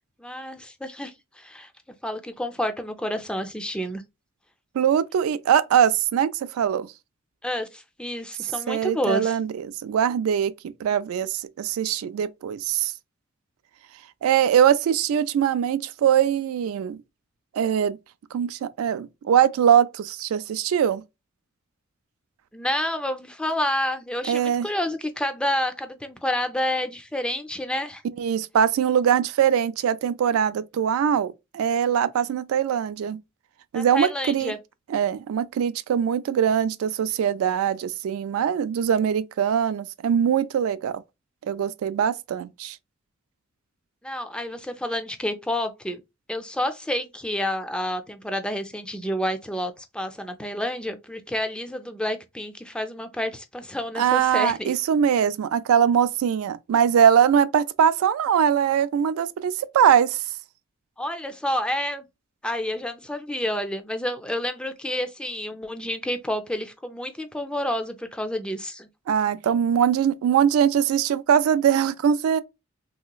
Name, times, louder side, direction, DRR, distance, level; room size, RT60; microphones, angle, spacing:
voice 1, 0.2-1.7 2.0-4.0 7.4-9.4 22.5-28.0 33.7-34.6 44.0-46.0 46.3-54.7 61.0-62.0 62.4-68.9, left 1 dB, 5° left, 0.3 m, -29 dB
voice 2, 4.8-6.9 8.7-10.5 10.8-12.9 14.2-17.0 17.5-18.0 18.3-21.0 24.3-24.7 28.2-33.2 33.7-34.5 34.9-40.9 41.4-42.8 54.0-60.2 69.1-72.4, right 8 dB, 90° right, 0.3 m, -22 dB
3.1 x 2.9 x 2.2 m
head